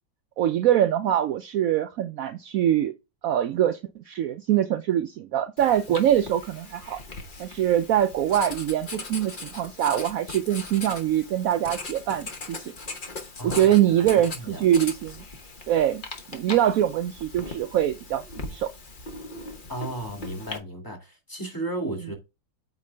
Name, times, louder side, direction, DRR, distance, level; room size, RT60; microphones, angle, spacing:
voice 1, 0.4-2.9 3.2-3.8 4.1-7.0 7.4-12.7 13.4-15.1 15.7-16.0 16.3-18.7, right 11 dB, 80° right, 0.7 m, -23 dB
Writing, 5.6-20.6, left 3 dB, 35° left, 0.9 m, -39 dB
voice 2, 13.4-14.1 14.4-14.7 19.7-22.1, right 1 dB, 10° left, 2.2 m, -34 dB
8.5 x 4.7 x 3.4 m
omnidirectional pair, 2.0 m